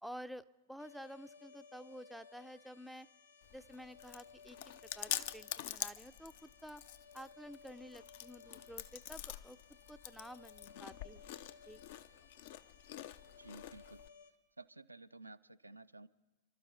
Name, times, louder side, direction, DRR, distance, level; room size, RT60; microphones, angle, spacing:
voice 1, 0.0-3.1 3.5-4.6 4.9-6.8 7.1-9.6 9.9-11.3 11.7-11.8, equal, ahead, 11 dB, 0.5 m, -51 dB
sound 1, 0.8-14.3, left 5 dB, 80° left, 1.6 m, -60 dB
Chewing mastication, 3.4-14.1, left 12 dB, 50° left, 0.5 m, -46 dB
voice 2, 13.4-14.0 14.6-16.1, right 2 dB, 85° right, 11 dB, 0.4 m, -54 dB
29.0 x 12.5 x 4.0 m, 1.1 s
figure-of-eight pair, 100°, 0 cm